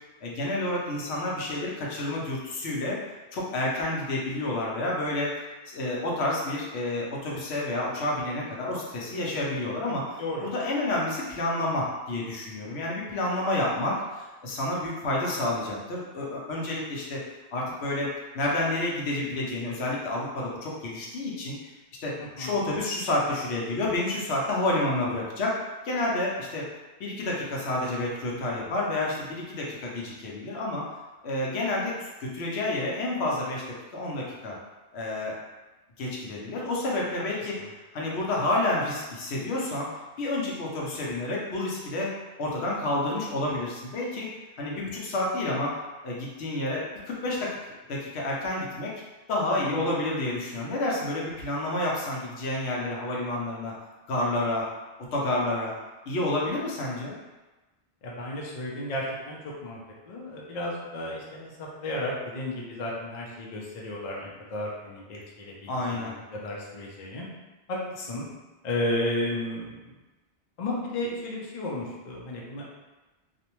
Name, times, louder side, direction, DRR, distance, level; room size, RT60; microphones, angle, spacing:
voice 1, 0.2-3.0 3.3-5.3 5.7-17.2 17.5-21.7 22.0-25.6 25.8-26.7 27.0-30.9 31.2-33.6 33.9-34.5 34.9-35.4 36.0-37.6 37.9-39.9 40.2-42.1 42.4-44.3 44.6-45.7 46.0-47.5 47.9-48.9 49.3-53.7 54.1-54.7 55.1-55.7 56.1-57.1 65.7-66.1, left 2 dB, 70° left, -3 dB, 0.8 m, -29 dB
voice 2, 10.2-10.5 22.2-22.6 37.2-37.7 49.5-49.9 58.0-59.8 60.1-67.3 67.7-68.3 68.6-69.9 70.6-72.6, left 1 dB, 55° left, -3 dB, 0.5 m, -33 dB
2.5 x 2.1 x 2.9 m, 1.2 s
omnidirectional pair, 1.2 m